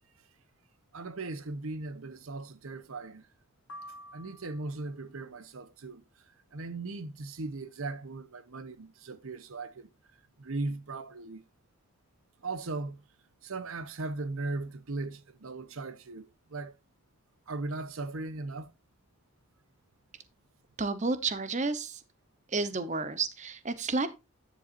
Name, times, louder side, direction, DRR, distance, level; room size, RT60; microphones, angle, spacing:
voice 1, 0.9-3.3 4.1-6.0 6.5-9.9 10.4-11.4 12.4-13.1 13.4-16.7 17.5-18.7, right 3 dB, 75° right, 0.9 m, -38 dB
sound 1, 3.7-5.0, equal, 85° left, 1.0 m, -48 dB
voice 2, 20.8-22.0 22.5-24.1, right 3 dB, 35° right, 0.8 m, -31 dB
10.0 x 7.9 x 2.5 m
head